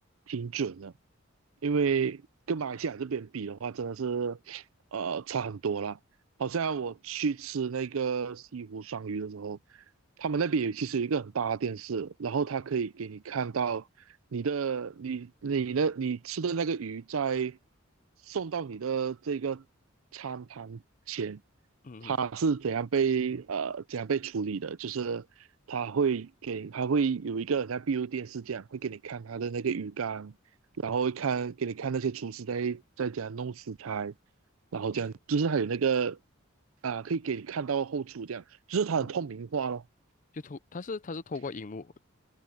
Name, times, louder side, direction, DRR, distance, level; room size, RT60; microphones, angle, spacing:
voice 1, 0.3-0.9 1.6-2.2 2.5-4.6 4.9-6.0 6.4-9.6 10.2-13.8 14.3-17.6 18.3-19.6 20.1-20.8 21.1-21.4 22.0-25.2 25.7-30.3 30.8-34.1 34.7-36.2 36.8-39.8, right 6 dB, 80° right, 0.5 m, -31 dB
voice 2, 21.8-22.2 34.9-35.1 39.0-39.1 40.3-42.0, left 3 dB, 40° left, 0.6 m, -39 dB
head